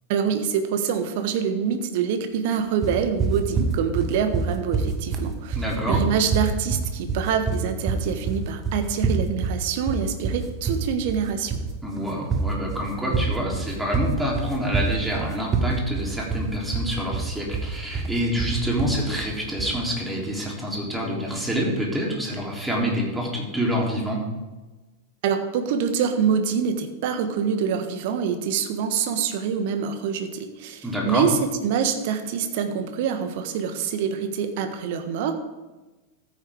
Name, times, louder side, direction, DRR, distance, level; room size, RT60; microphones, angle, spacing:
voice 1, 0.1-5.6 5.9-11.6 25.2-35.3, right 7 dB, 50° right, 8 dB, 1.3 m, -25 dB
sound 1, 2.8-19.8, right 4 dB, 25° right, 1.5 m, -26 dB
voice 2, 5.5-6.0 11.8-24.2 30.8-31.2, equal, 5° right, -3 dB, 3.3 m, -27 dB
14.0 x 9.3 x 3.6 m, 1.2 s
figure-of-eight pair, 90°, 0 cm